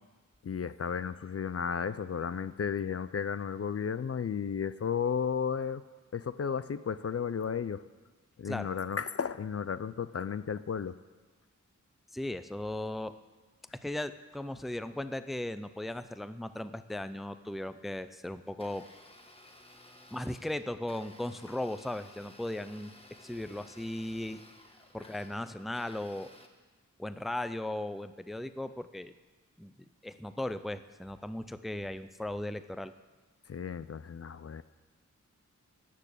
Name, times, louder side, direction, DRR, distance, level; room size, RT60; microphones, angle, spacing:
voice 1, 0.4-5.8 6.1-7.8 8.4-11.0 33.5-34.6, left 7 dB, 50° left, 14 dB, 0.5 m, -33 dB
voice 2, 12.1-13.2 13.7-18.9 20.1-22.9 23.2-24.4 24.9-26.3 27.0-29.1 29.6-29.7 30.0-32.9, left 1 dB, ahead, 12 dB, 0.5 m, -37 dB
Domestic sounds home sounds, 18.5-26.5, left 1 dB, 20° left, 1.4 m, -56 dB
13.5 x 6.8 x 10.0 m, 1.3 s
wide cardioid pair, 80°, 30 cm